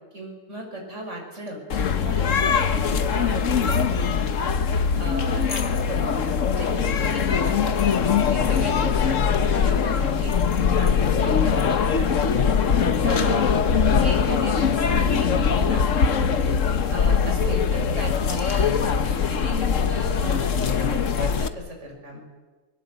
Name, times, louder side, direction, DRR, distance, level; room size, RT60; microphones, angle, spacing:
voice 1, 0.1-1.6 1.9-4.3 5.0-6.2 6.5-8.0 8.2-12.4 13.0-13.4 13.8-15.9 16.9-22.2, right 1 dB, 30° right, 2 dB, 6.1 m, -35 dB
sound 1, 1.7-21.5, left 6 dB, 45° left, 1.1 m, -22 dB
29.5 x 21.0 x 8.2 m, 1.3 s
omnidirectional pair, 2.3 m